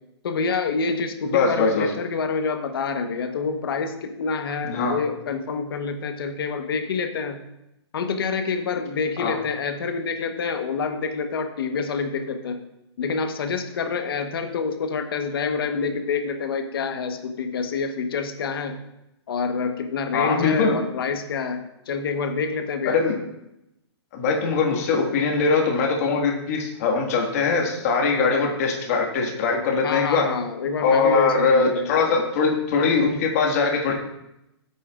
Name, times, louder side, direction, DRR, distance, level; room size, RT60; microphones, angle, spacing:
voice 1, 0.2-7.4 7.9-12.6 13.0-18.8 19.3-23.0 29.8-31.9, left 5 dB, 55° left, 6 dB, 1.2 m, -27 dB
voice 2, 1.3-1.9 4.6-4.9 9.2-9.3 20.1-20.8 22.9-23.1 24.1-30.3 30.8-33.9, left 4 dB, 35° left, 0 dB, 1.8 m, -21 dB
15.0 x 8.4 x 2.5 m, 0.86 s
hypercardioid pair, 165°, 14 cm